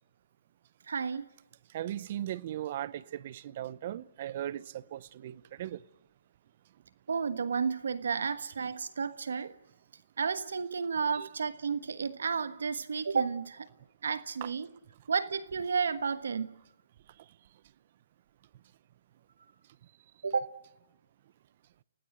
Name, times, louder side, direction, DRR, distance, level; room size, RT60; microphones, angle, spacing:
voice 1, 0.9-1.3 7.1-9.5 10.2-13.7 14.0-14.7 15.1-16.5 20.2-20.5, right 5 dB, 80° right, 1.3 m, -32 dB
voice 2, 1.7-5.8 11.1-11.3, right 12 dB, 45° right, 0.8 m, -38 dB
29.5 x 18.5 x 7.8 m
hypercardioid pair, 155°, 0 cm